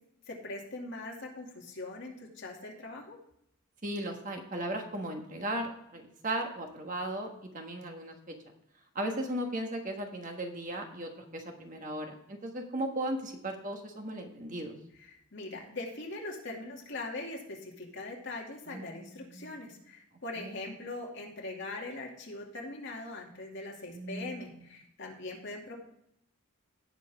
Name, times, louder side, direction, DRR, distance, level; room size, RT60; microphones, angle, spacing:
voice 1, 0.3-3.2 15.0-25.8, left 2 dB, 55° left, -1 dB, 2.4 m, -41 dB
voice 2, 3.8-7.3 7.5-8.1 8.9-14.8 18.7-19.5 20.4-20.5 23.9-24.4, right 1 dB, 35° right, 3 dB, 1.4 m, -36 dB
17.0 x 6.0 x 3.5 m, 0.76 s
head